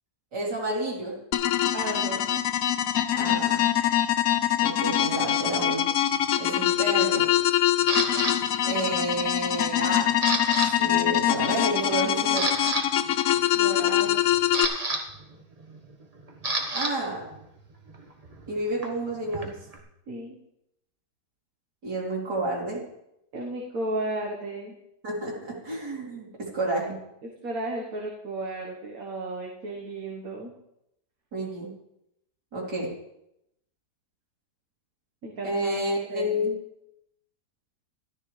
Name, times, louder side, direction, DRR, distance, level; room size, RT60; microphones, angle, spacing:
voice 1, 0.3-1.2 3.1-3.7 4.6-5.8 6.4-7.3 8.6-10.2 10.6-12.5 16.7-17.3 18.5-19.6 21.8-22.8 25.0-27.0 31.3-31.7 32.5-32.9 35.4-36.6, right 1 dB, 80° right, -5 dB, 3.8 m, -30 dB
sound 1, 1.3-14.7, left 11 dB, 65° left, 0.9 m, -24 dB
voice 2, 1.7-2.2 13.5-14.2 20.1-20.4 23.3-24.7 27.2-30.5 35.2-35.8 36.1-36.5, right 2 dB, 55° right, -1 dB, 1.8 m, -34 dB
Camera, 7.9-8.3 8.9-9.3 9.6-10.7 10.9-11.2 11.7-11.8 12.2-12.8 14.0-16.9 17.2-19.8, right 2 dB, 25° right, 1.2 m, -30 dB
13.5 x 12.5 x 3.3 m, 0.81 s
omnidirectional pair, 1.8 m